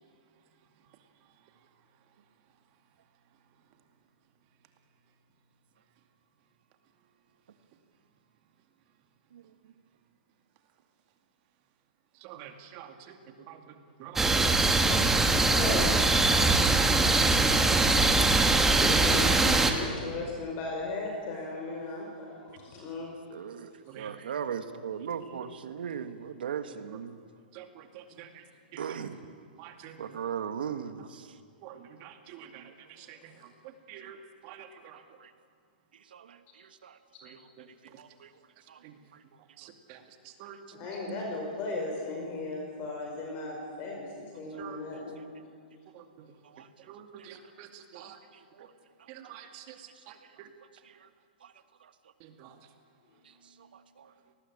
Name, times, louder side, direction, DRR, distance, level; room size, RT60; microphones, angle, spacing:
voice 1, 12.3-12.9 14.0-14.1 14.5-15.1 16.5-16.8 17.3-18.4 23.9-24.1 27.6-27.7 29.6-29.9 31.6-31.7 32.4-32.5 33.9-34.2 34.5-34.6 40.4-40.6 44.6-44.8 46.9-47.7 47.9-48.1 49.5-49.6, right 10 dB, 35° right, 6 dB, 2.3 m, -46 dB
sound 1, 14.2-19.7, right 3 dB, 5° right, 1.6 m, -22 dB
voice 2, 15.1-16.0 18.6-23.1 28.1-28.2 33.0-33.1 40.7-45.3 53.3-53.7, left 3 dB, 35° left, 0 dB, 5.2 m, -37 dB
voice 3, 23.3-27.2 28.8-29.2 30.0-31.2 35.2-35.3 36.1-36.4 36.8-36.9 38.0-38.3 38.7-38.8 46.5-46.7 47.9-48.0 48.6-48.7 54.0-54.1, right 8 dB, 80° right, 10 dB, 1.6 m, -37 dB
27.0 x 19.5 x 8.7 m, 2.2 s
hypercardioid pair, 150°, 5 cm